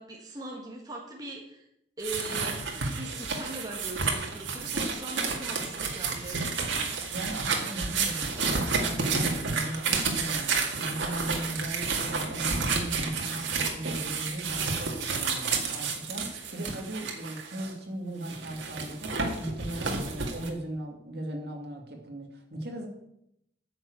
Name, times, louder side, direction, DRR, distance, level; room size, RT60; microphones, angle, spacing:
voice 1, 0.0-1.6 2.0-6.4, right 2 dB, 20° right, -1 dB, 1.6 m, -40 dB
sound 1, 2.0-17.7 18.2-20.5, right 4 dB, 80° right, 2.0 m, -31 dB
voice 2, 7.1-22.9, right 1 dB, 55° right, 2 dB, 2.4 m, -38 dB
9.7 x 6.5 x 8.2 m, 0.78 s
head